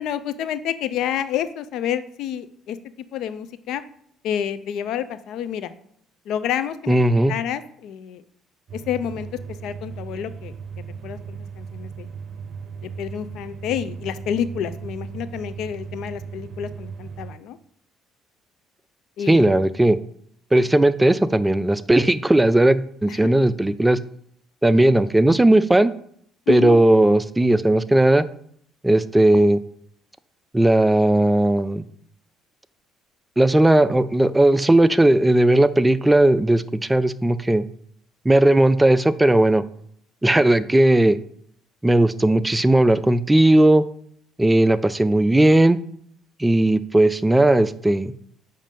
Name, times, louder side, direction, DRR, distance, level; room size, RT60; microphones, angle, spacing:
voice 1, 0.0-2.8 3.1-3.8 4.2-5.7 6.3-7.0 7.3-8.2 8.7-9.3 9.6-10.5 11.0-12.1 12.8-17.6 19.2-19.5 23.1-23.4 26.5-26.8, left 9 dB, 70° left, 13 dB, 0.4 m, -29 dB
voice 2, 6.9-7.3 19.3-20.0 20.5-24.0 24.6-25.9 26.5-28.3 28.8-29.6 30.5-31.8 33.4-37.7 38.3-39.6 40.2-41.2 41.8-43.9 44.4-45.8 46.4-48.1, right 1 dB, 15° right, 15 dB, 0.3 m, -17 dB
sound 1, 8.7-17.4, right 6 dB, 55° right, 0.6 m, -36 dB
7.3 x 2.6 x 5.2 m, 0.65 s
supercardioid pair, 70°, 0 cm